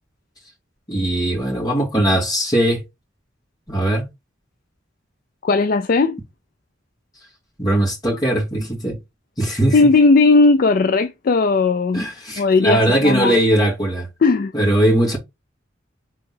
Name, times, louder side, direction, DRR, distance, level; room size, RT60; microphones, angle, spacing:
voice 1, 0.9-2.8 3.7-4.0 7.6-9.0 9.4-9.8 11.9-14.1 14.5-15.2, right 1 dB, 20° left, 2.5 m, -19 dB
voice 2, 5.4-6.2 9.7-12.0 12.4-13.4 14.2-14.5, left 3 dB, 45° left, 0.4 m, -16 dB
3.9 x 3.6 x 3.7 m
head